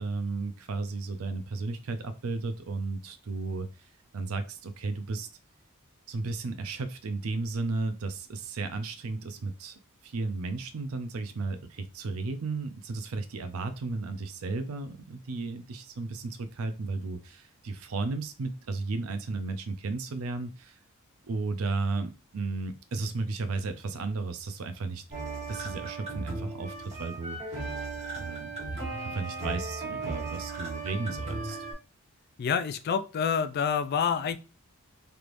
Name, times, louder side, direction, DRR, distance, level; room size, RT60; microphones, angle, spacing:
voice 1, 0.0-3.7 4.1-5.3 6.1-20.8 21.2-25.0 25.5-27.7 28.2-31.7, right 3 dB, 75° right, 0.5 m, -34 dB
sound 1, 25.1-31.7, right 3 dB, 30° right, 1.5 m, -36 dB
voice 2, 32.4-34.4, left 7 dB, 50° left, 0.3 m, -27 dB
3.3 x 3.1 x 2.5 m
head